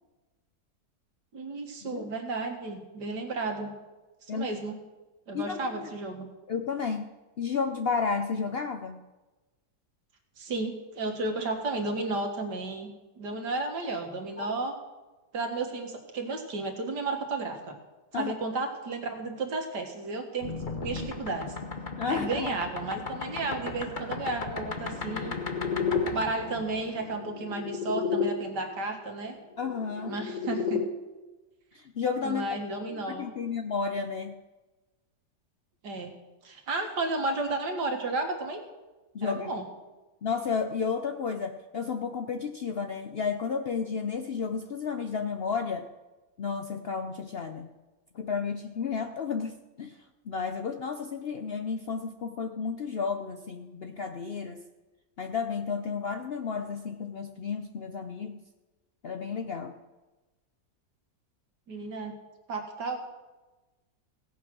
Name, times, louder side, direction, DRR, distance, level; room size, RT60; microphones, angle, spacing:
voice 1, 1.3-3.7 4.2-4.8 5.3-6.3 10.4-14.7 15.3-17.8 18.1-21.6 22.1-25.4 26.1-29.3 30.0-30.8 32.2-33.3 35.8-36.1 36.4-38.6 39.2-39.6 61.7-62.1 62.5-63.0, right 3 dB, 85° right, 4 dB, 2.3 m, -33 dB
voice 2, 5.3-5.9 6.5-7.1 7.4-9.1 14.4-14.5 18.1-18.3 22.0-22.5 29.6-30.1 31.7-32.4 33.1-34.4 39.1-39.6 40.2-45.9 46.4-47.7 48.1-50.0 50.3-54.6 55.2-58.4 59.0-59.7, left 5 dB, 60° left, 7 dB, 0.6 m, -32 dB
sound 1, 20.4-28.3 29.6-30.9, left 5 dB, 35° left, 1.1 m, -33 dB
17.0 x 8.1 x 6.1 m, 1.1 s
omnidirectional pair, 1.8 m